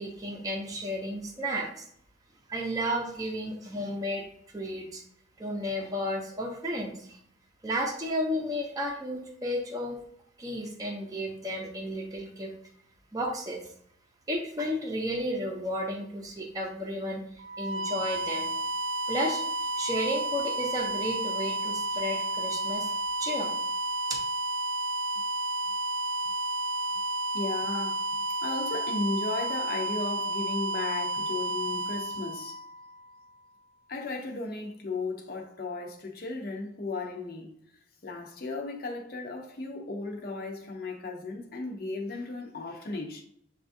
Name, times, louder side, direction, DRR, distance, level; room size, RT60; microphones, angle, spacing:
voice 1, 0.0-1.8 2.5-4.2 4.5-5.0 5.4-7.1 7.6-10.0 10.4-12.5 13.1-13.6 14.3-17.2 17.6-18.5 19.1-19.4 19.8-22.9 23.2-23.5, equal, 20° right, 0.6 m, -32 dB
sound 1, 17.4-33.2, right 1 dB, 85° right, 0.3 m, -31 dB
voice 2, 27.3-32.6 33.9-37.5 38.0-43.2, left 3 dB, 55° left, 0.6 m, -35 dB
7.1 x 2.4 x 2.6 m
head